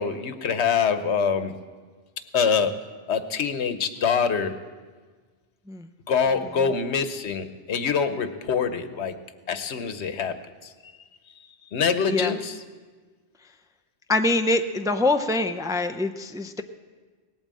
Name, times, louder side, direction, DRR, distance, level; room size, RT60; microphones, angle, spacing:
voice 1, 0.0-1.5 2.3-2.8 3.1-4.6 6.1-9.2 9.5-10.4 10.6-10.7 11.7-12.6, left 6 dB, 90° left, 10 dB, 1.2 m, -25 dB
voice 2, 14.1-16.6, left 2 dB, 5° right, 7 dB, 0.4 m, -24 dB
18.5 x 9.0 x 7.5 m, 1.4 s
omnidirectional pair, 1.1 m